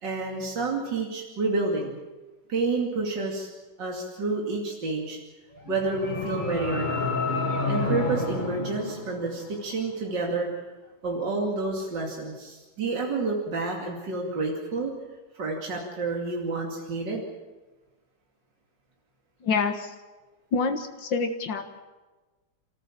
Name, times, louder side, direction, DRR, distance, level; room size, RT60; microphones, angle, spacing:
voice 1, 0.0-2.0 2.5-3.5 3.8-5.2 5.7-7.1 7.7-10.5 11.0-14.9 15.3-17.3, right 3 dB, 75° right, -1 dB, 3.3 m, -29 dB
sound 1, 5.5-9.8, left 2 dB, 25° left, 2.1 m, -30 dB
voice 2, 19.4-19.9 20.5-21.8, left 4 dB, 85° left, 5 dB, 2.2 m, -27 dB
29.0 x 14.0 x 7.5 m, 1.2 s
omnidirectional pair, 1.9 m